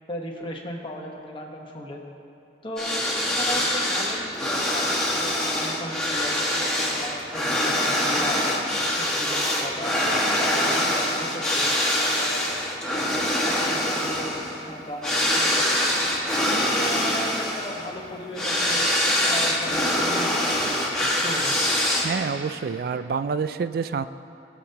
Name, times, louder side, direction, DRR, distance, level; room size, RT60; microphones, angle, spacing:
voice 1, 0.1-2.0 2.6-8.5 9.0-11.7 12.0-12.5 13.4-18.8 19.3-21.5, equal, 30° left, 0 dB, 1.2 m, -36 dB
sound 1, 2.8-22.3, left 1 dB, 5° left, 1.6 m, -24 dB
voice 2, 22.0-24.0, right 5 dB, 55° right, 12 dB, 0.3 m, -27 dB
21.0 x 7.3 x 2.9 m, 2.9 s
head